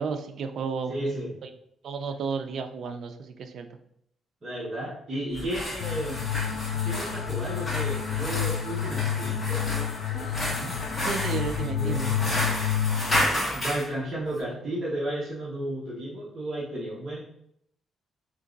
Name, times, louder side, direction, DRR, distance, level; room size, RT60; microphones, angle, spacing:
voice 1, 0.0-1.1 1.4-1.5 1.8-3.7 11.1-12.0, right 5 dB, 55° right, 7 dB, 0.4 m, -32 dB
voice 2, 0.9-1.3 4.4-6.2 6.8-10.8 11.6-12.2 13.5-17.2, right 1 dB, 35° right, -7 dB, 1.0 m, -33 dB
Store Shopping Cart Being Pushed, 5.3-13.9, left 1 dB, 15° left, 1.4 m, -32 dB
sound 1, 5.8-13.2, left 9 dB, 75° left, 0.4 m, -29 dB
3.7 x 2.9 x 3.9 m, 0.72 s
cardioid pair, 145°, 0 cm